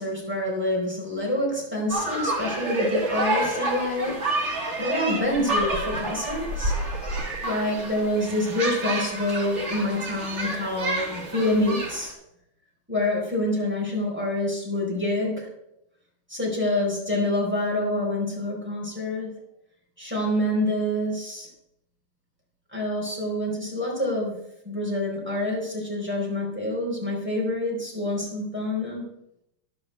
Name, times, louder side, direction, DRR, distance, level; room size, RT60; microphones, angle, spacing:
voice 1, 0.0-6.8 7.4-12.1 12.9-15.5 16.3-19.4 20.0-21.5 22.7-24.4 24.6-29.1, left 1 dB, 5° right, -4 dB, 4.0 m, -27 dB
sound 1, 1.9-12.1, right 2 dB, 25° right, 2.1 m, -29 dB
13.5 x 11.5 x 3.5 m, 0.80 s
omnidirectional pair, 3.8 m